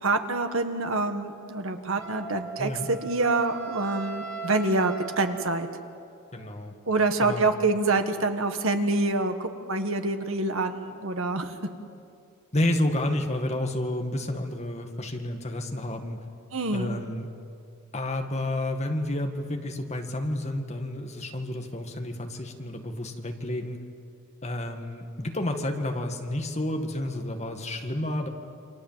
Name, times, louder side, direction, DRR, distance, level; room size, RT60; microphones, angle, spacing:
voice 1, 0.0-5.7 6.9-11.5 16.5-17.0, right 3 dB, 65° right, 7 dB, 1.7 m, -26 dB
Wind instrument woodwind instrument, 2.0-5.9, right 3 dB, 80° right, 3.8 m, -39 dB
voice 2, 6.3-6.7 7.2-7.5 12.5-16.2 16.7-17.3 17.9-23.8 24.4-28.3, left 1 dB, 30° left, 4 dB, 2.0 m, -30 dB
28.5 x 26.0 x 7.6 m, 2.5 s
head